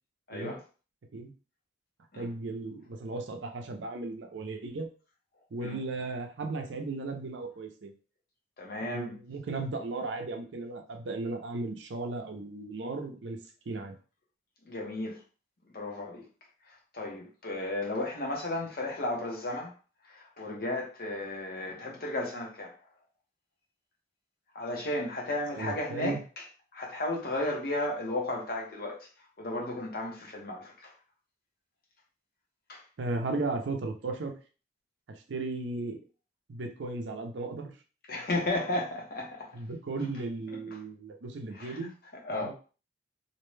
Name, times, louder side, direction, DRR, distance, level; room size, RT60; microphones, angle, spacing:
voice 1, 0.3-0.6 2.1-2.3 5.6-5.8 8.6-9.1 14.6-15.2 15.7-16.2 16.7-19.7 20.0-22.7 24.5-26.4 26.7-29.1 29.4-30.9 32.7-32.8 38.1-39.6 40.5-40.8 41.5-41.8 42.2-42.5, left 2 dB, 50° left, -1 dB, 0.8 m, -34 dB
voice 2, 2.2-4.9 5.5-7.9 8.8-13.4 13.7-13.9 25.6-26.2 33.0-34.3 35.1-36.0 36.5-37.7 39.5-41.9 42.3-42.5, right 3 dB, 70° right, 4 dB, 0.5 m, -35 dB
2.6 x 2.1 x 3.1 m, 0.36 s
head